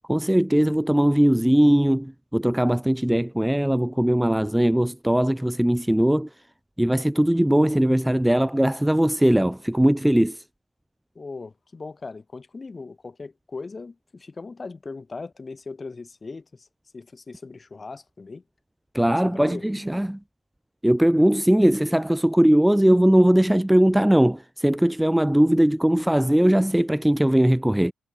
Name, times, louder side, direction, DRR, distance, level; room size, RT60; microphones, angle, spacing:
voice 1, 0.1-6.3 6.8-10.4 18.9-20.2 20.8-27.9, right 1 dB, 5° right, 0.9 m, -20 dB
voice 2, 11.2-16.7 16.9-18.4 19.2-19.6, left 4 dB, 25° left, 7.2 m, -38 dB
cardioid pair, 90°, 0 cm